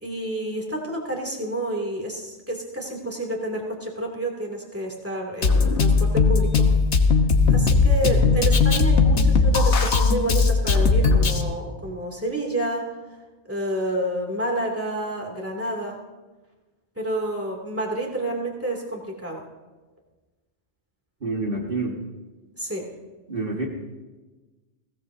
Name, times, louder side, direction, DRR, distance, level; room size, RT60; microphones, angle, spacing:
voice 1, 0.0-6.8 7.5-12.9 13.4-16.0 17.0-19.4 22.6-22.9, right 1 dB, 10° right, -1 dB, 2.7 m, -29 dB
Drum kit, 5.4-11.4, left 4 dB, 75° left, 1.5 m, -18 dB
voice 2, 21.2-22.0 23.3-23.7, right 2 dB, 50° right, -2 dB, 2.0 m, -27 dB
22.0 x 17.0 x 2.8 m, 1.2 s
omnidirectional pair, 1.2 m